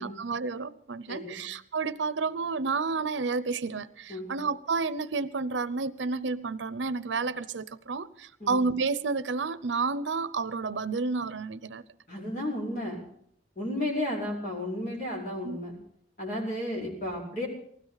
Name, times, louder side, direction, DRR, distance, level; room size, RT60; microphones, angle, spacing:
voice 1, 0.0-11.8 15.4-15.6, right 4 dB, 85° right, 0.7 m, -30 dB
voice 2, 1.1-1.4 4.1-4.3 8.4-8.6 12.1-13.0 13.5-15.7 16.2-17.5, left 1 dB, 45° left, 5.1 m, -33 dB
19.5 x 16.0 x 4.1 m
head